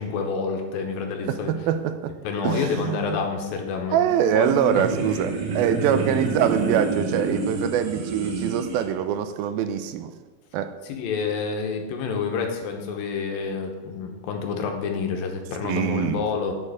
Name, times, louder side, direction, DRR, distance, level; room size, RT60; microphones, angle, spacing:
voice 1, 0.0-1.5 2.2-4.0 4.3-4.8 10.8-16.5, left 5 dB, 80° left, 3 dB, 2.8 m, -28 dB
voice 2, 1.3-2.2 2.4-3.2 3.9-10.1 10.5-10.8 15.6-16.3, right 9 dB, 85° right, 10 dB, 2.4 m, -24 dB
sound 1, 4.0-8.8, right 3 dB, 65° right, 2.4 m, -29 dB
9.8 x 6.4 x 4.9 m, 1.3 s
omnidirectional pair, 4.2 m